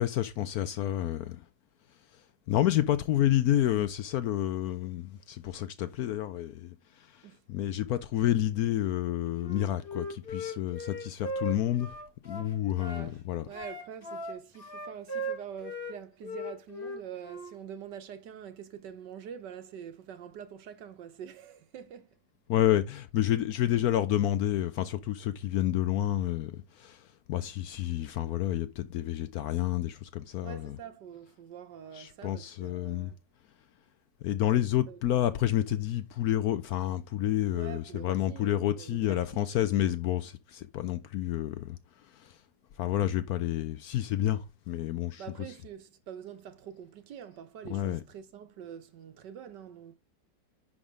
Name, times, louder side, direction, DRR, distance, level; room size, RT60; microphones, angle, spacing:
voice 1, 0.0-1.4 2.5-6.7 7.1-7.2 7.5-11.9 12.2-13.5 22.5-30.8 31.9-33.1 34.2-41.8 42.1-42.4 42.8-45.6 47.6-48.0, left 12 dB, 70° left, 0.9 m, -29 dB
Wind instrument woodwind instrument, 9.4-13.1 13.5-17.5, equal, 30° left, 1.5 m, -38 dB
voice 2, 12.8-22.1 30.4-33.2 34.9-35.0 37.5-39.4 45.2-50.0, right 8 dB, 75° right, 1.6 m, -45 dB
10.0 x 3.7 x 5.0 m
omnidirectional pair, 1.9 m